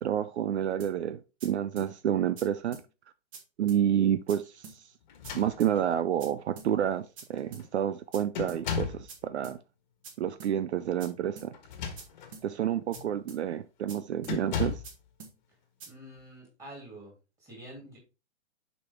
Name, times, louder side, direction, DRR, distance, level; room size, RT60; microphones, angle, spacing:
voice 1, 0.0-2.8 3.6-4.8 5.3-9.6 10.2-11.5 12.4-14.8, right 10 dB, 65° right, 0.6 m, -29 dB
sound 1, 0.8-0.9 1.4-1.5 1.8-1.9 2.4-2.5 2.7-2.9 3.3-3.4 3.7-3.8 4.3-4.4 4.6-4.8 5.2-5.3 5.6-5.7 6.2-6.3 6.6-6.7 7.2-7.3 7.5-7.7 8.1-8.2 8.5-8.6 9.1-9.2 9.4-9.6 10.0-10.1 10.4-10.5 11.0-11.1 11.4-11.5 12.0-12.1 12.3-12.5 12.9-13.0 13.3-13.4 13.9-14.0 14.2-14.4 14.8-14.9 15.2-15.3 15.8-15.9, right 5 dB, 30° right, 1.5 m, -46 dB
sound 2, 5.1-6.0 6.9-7.0 7.3-7.7 8.3-9.1 11.5-12.4 12.9-13.1 14.2-15.0, left 7 dB, 40° left, 1.5 m, -36 dB
voice 2, 15.9-17.1 17.4-18.0, right 1 dB, 10° right, 2.6 m, -47 dB
6.9 x 5.1 x 3.5 m
hypercardioid pair, 175°, 36 cm